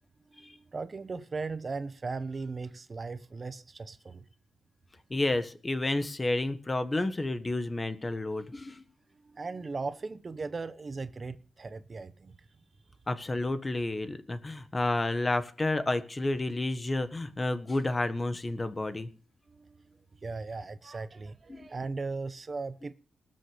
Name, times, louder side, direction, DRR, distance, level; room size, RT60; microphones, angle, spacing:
voice 1, 0.3-4.3 9.2-12.5 19.5-22.9, right 4 dB, 30° right, 0.8 m, -38 dB
voice 2, 5.1-8.8 13.1-19.1 21.5-21.7, left 2 dB, 20° left, 1.4 m, -30 dB
20.0 x 7.8 x 5.1 m
wide cardioid pair, 135°, 0 cm